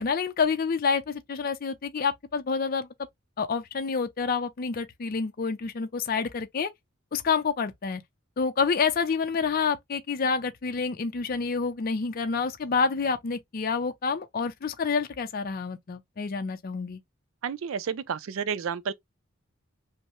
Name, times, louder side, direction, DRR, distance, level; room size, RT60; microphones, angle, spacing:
voice 1, 0.0-2.9 3.4-6.7 7.1-8.0 8.4-17.0, left 5 dB, 45° left, 0.4 m, -28 dB
voice 2, 17.4-18.9, right 7 dB, 70° right, 0.4 m, -31 dB
5.4 x 2.0 x 3.0 m
head